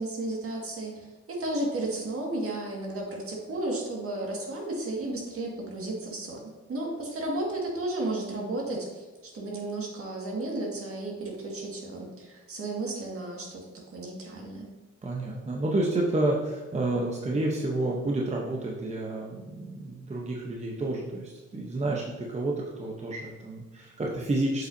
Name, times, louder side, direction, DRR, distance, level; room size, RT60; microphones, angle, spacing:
voice 1, 0.0-6.4 6.7-13.6 13.9-14.7, right 2 dB, 50° right, -1 dB, 2.0 m, -33 dB
voice 2, 15.0-24.7, right 2 dB, 20° right, -2 dB, 0.9 m, -30 dB
7.4 x 5.7 x 2.8 m, 1.3 s
cardioid pair, 90°, 30 cm